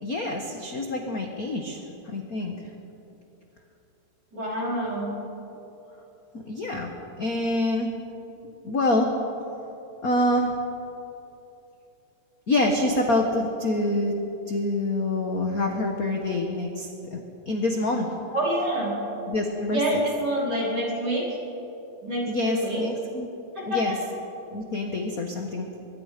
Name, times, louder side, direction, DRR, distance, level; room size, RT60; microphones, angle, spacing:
voice 1, 0.0-1.8 2.1-2.5 6.3-6.9 7.2-7.9 8.6-9.1 10.0-10.5 12.5-14.1 14.5-17.2 17.5-18.1 19.3-19.8 22.3-23.3 23.7-23.9 24.5-25.7, left 2 dB, 45° left, 2 dB, 1.2 m, -26 dB
voice 2, 4.3-5.1 18.3-18.9 19.7-21.3 22.0-22.8 23.6-24.0, right 1 dB, 30° right, -5 dB, 5.3 m, -27 dB
23.5 x 22.5 x 5.2 m, 2.9 s
omnidirectional pair, 3.4 m